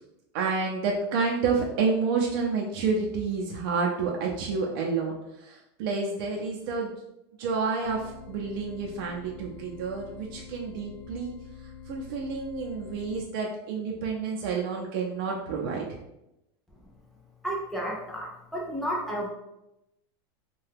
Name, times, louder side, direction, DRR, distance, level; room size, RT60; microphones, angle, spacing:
voice 1, 0.3-6.9 7.4-11.3 11.9-15.8, right 4 dB, 60° right, -1 dB, 0.5 m, -29 dB
sound 1, 7.8-13.2, left 7 dB, 85° left, 0.6 m, -46 dB
voice 2, 17.4-19.3, equal, ahead, -4 dB, 0.5 m, -32 dB
2.7 x 2.2 x 3.3 m, 0.87 s
supercardioid pair, 155°, 13 cm